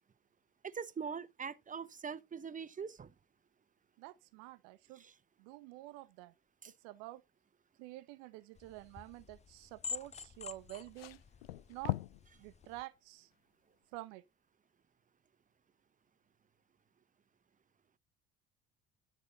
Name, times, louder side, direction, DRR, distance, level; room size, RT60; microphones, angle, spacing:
voice 1, 0.6-3.1 5.0-5.1 6.6-6.7, right 6 dB, 25° right, 1.0 m, -42 dB
voice 2, 4.0-5.0 5.4-6.3 6.6-7.2 7.8-11.2 11.7-12.0 12.4-13.3 13.9-14.2, right 18 dB, 70° right, 1.1 m, -49 dB
sound 1, 8.6-12.8, left 5 dB, 25° left, 0.7 m, -48 dB
sound 2, 10.6-12.3 12.6-12.8 13.9-14.0, left 16 dB, 85° left, 0.4 m, -40 dB
11.5 x 4.3 x 5.3 m
hypercardioid pair, 60°, 29 cm